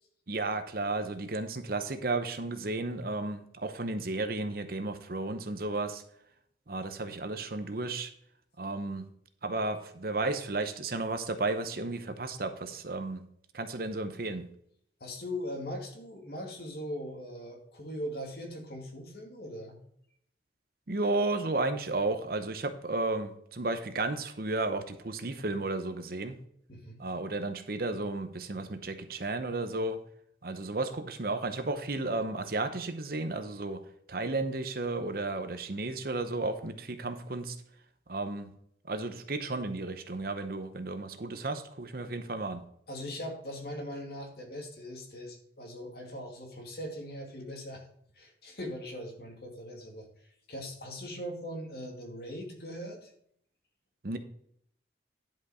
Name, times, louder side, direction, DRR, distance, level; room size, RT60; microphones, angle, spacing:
voice 1, 0.3-6.0 6.7-8.1 8.6-9.1 9.4-13.2 13.5-14.5 20.9-26.4 27.0-30.0 30.4-33.8 34.1-37.6 38.1-38.5 38.9-42.6 54.0-54.2, right 2 dB, 50° right, 9 dB, 0.8 m, -33 dB
voice 2, 15.0-19.8 26.7-27.0 42.9-47.8 48.2-50.1 50.5-53.1, equal, 55° left, 1 dB, 2.2 m, -40 dB
10.5 x 5.3 x 5.0 m, 0.68 s
head